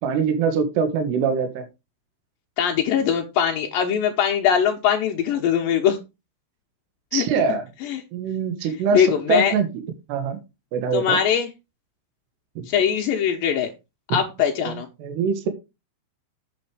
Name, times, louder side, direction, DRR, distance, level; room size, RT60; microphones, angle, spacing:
voice 1, 0.0-1.6 7.1-7.6 8.1-9.7 10.1-10.4 10.7-11.2 12.6-12.7 15.0-15.5, right 5 dB, 70° right, 7 dB, 3.1 m, -23 dB
voice 2, 2.6-6.0 7.1-7.3 7.8-8.0 8.6-9.5 10.9-11.5 12.7-13.7 14.1-14.9, left 8 dB, 85° left, 2 dB, 2.0 m, -21 dB
7.9 x 7.6 x 4.9 m, 0.26 s
omnidirectional pair, 5.6 m